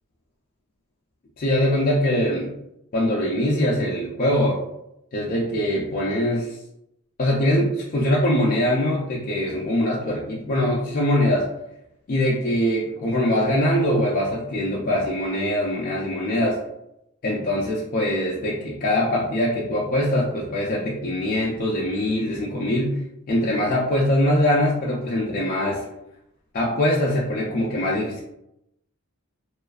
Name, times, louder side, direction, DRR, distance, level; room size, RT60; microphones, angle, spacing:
voice 1, 1.4-2.5 2.9-4.6 5.1-6.6 7.2-11.5 12.1-16.6 17.2-23.0 23.3-25.8 26.5-28.2, left 1 dB, 40° left, -4 dB, 0.3 m, -22 dB
2.4 x 2.2 x 2.3 m, 0.84 s
head